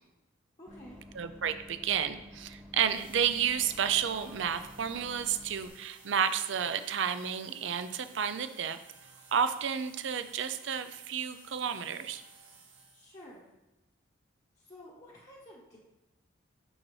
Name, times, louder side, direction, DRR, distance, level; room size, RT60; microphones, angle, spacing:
voice 1, 0.6-1.0 12.9-13.5 14.5-15.8, left 1 dB, 35° left, -5 dB, 1.1 m, -51 dB
Bus, 0.7-5.7, equal, 5° right, 0.6 m, -51 dB
voice 2, 1.1-8.8 9.3-12.2, right 8 dB, 70° right, 11 dB, 0.5 m, -31 dB
sound 1, 2.8-13.3, right 4 dB, 85° right, 1.6 m, -56 dB
6.2 x 6.1 x 3.2 m, 1.0 s
head